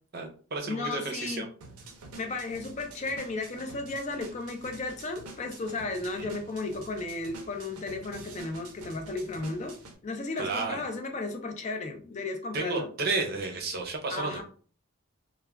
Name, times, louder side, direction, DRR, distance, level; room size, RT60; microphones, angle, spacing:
voice 1, 0.1-1.5 6.2-6.3 10.4-10.8 12.5-14.4, right 3 dB, 45° right, 2 dB, 0.6 m, -32 dB
voice 2, 0.7-1.4 2.2-9.8 10.0-12.9 14.1-14.4, left 3 dB, 30° left, 6 dB, 0.4 m, -34 dB
sound 1, 1.6-10.0, right 3 dB, 85° right, 0.6 m, -48 dB
2.3 x 2.2 x 3.3 m, 0.42 s
head